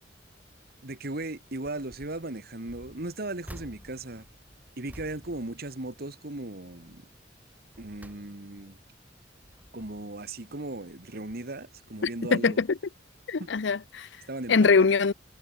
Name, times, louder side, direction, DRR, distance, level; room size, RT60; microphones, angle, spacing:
voice 1, 0.8-4.3 4.8-7.1 7.8-8.8 9.7-12.6 13.4-13.5 14.3-14.9, right 2 dB, 55° right, 2.0 m, -37 dB
sound 1, 1.6-2.2 2.6-6.3 6.7-7.0 7.5-8.8 9.3-10.2 10.9-11.0 11.3-11.4, equal, 10° right, 5.2 m, -50 dB
voice 2, 12.3-12.8 13.3-14.1 14.5-15.1, left 4 dB, 70° left, 0.6 m, -22 dB
head